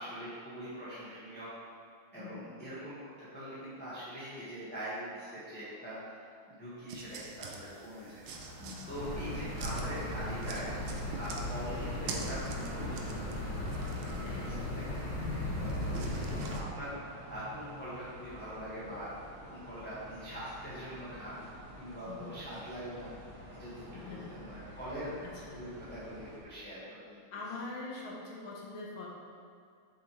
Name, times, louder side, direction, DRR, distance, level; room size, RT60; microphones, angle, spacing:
voice 1, 0.0-1.5 2.1-8.2 8.9-10.7 11.2-13.8 14.2-15.3 15.6-16.9 17.3-19.1 19.5-21.4 21.8-23.1 23.5-25.1 25.5-27.4, equal, 5° left, -11 dB, 1.4 m, -43 dB
voice 2, 2.1-2.6 8.6-8.9 14.2-14.8 15.4-15.6 22.1-22.4 23.7-24.3 24.6-24.8 25.2-25.6 27.3-29.1, left 3 dB, 75° left, -3 dB, 2.1 m, -45 dB
sound 1, 6.9-16.6, right 5 dB, 75° right, 1.6 m, -47 dB
sound 2, 8.2-26.4, right 1 dB, 40° right, 1.7 m, -48 dB
sound 3, 8.9-16.6, left 1 dB, 40° left, 2.2 m, -37 dB
8.6 x 6.6 x 3.3 m, 2.3 s
omnidirectional pair, 2.3 m